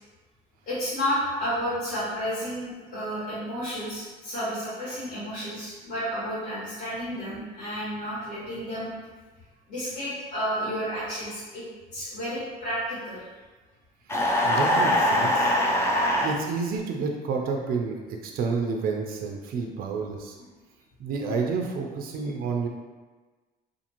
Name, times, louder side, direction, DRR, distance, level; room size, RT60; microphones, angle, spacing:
voice 1, 0.7-8.9 9.7-11.6 11.9-13.3, equal, 55° left, -12 dB, 1.4 m, -31 dB
sound 1, 14.1-16.4, left 1 dB, 15° left, 0.4 m, -22 dB
voice 2, 14.1-15.5 16.2-20.4 21.0-22.7, right 4 dB, 60° right, 1 dB, 0.4 m, -30 dB
2.5 x 2.5 x 2.9 m, 1.3 s
cardioid pair, 110°, 17 cm